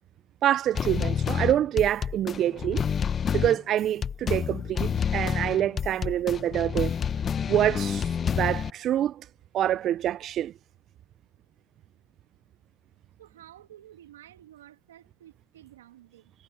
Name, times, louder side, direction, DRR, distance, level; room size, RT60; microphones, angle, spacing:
voice 1, 0.4-2.8 3.3-6.9 7.5-9.3 9.5-10.5, right 11 dB, 35° right, 0.3 m, -26 dB
sound 1, 0.7-8.7, left 7 dB, 25° left, 0.8 m, -28 dB
voice 2, 13.2-16.3, right 12 dB, 90° right, 2.4 m, -51 dB
supercardioid pair, 120°, 0 cm